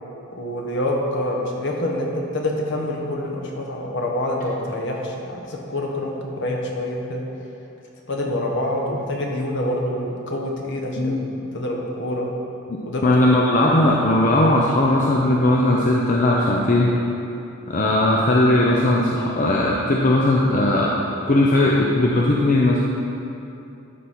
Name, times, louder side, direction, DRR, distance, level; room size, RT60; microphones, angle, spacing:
voice 1, 0.3-7.2 8.1-12.3 12.9-13.0, left 1 dB, 55° left, 0 dB, 1.2 m, -26 dB
voice 2, 13.0-16.9 17.7-20.9 21.3-22.8, left 1 dB, 40° left, -3 dB, 0.6 m, -18 dB
12.5 x 5.4 x 4.3 m, 2.7 s
head